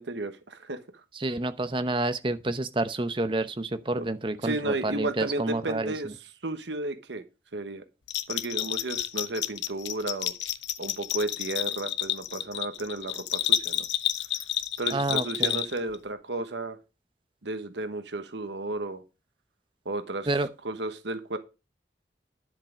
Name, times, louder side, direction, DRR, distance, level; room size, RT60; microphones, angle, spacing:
voice 1, 0.0-1.0 3.9-4.1 4.4-6.1 6.4-7.2 7.5-7.8 8.3-10.3 10.8-13.9 14.8-16.8 17.4-19.0 19.8-21.4, right 2 dB, 90° right, 1.2 m, -33 dB
voice 2, 1.1-6.1 14.9-15.6 20.3-20.5, right 2 dB, 30° right, 0.8 m, -29 dB
Bell, 8.1-16.0, left 12 dB, 85° left, 0.7 m, -30 dB
10.5 x 7.5 x 5.0 m
head